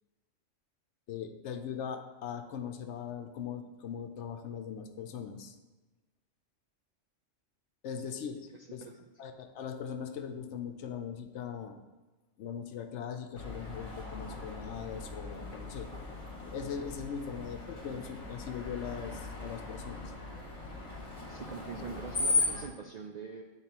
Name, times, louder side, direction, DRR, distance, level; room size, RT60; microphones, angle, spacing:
voice 1, 1.1-5.6 7.8-8.8 9.2-11.8 12.4-15.9 16.4-20.1, left 7 dB, 75° left, 7 dB, 0.9 m, -40 dB
Screech, 13.4-22.7, left 3 dB, 30° left, 1.2 m, -37 dB
voice 2, 21.3-23.4, right 5 dB, 65° right, 1 dB, 0.4 m, -44 dB
9.8 x 3.9 x 2.9 m, 1.2 s
omnidirectional pair, 1.2 m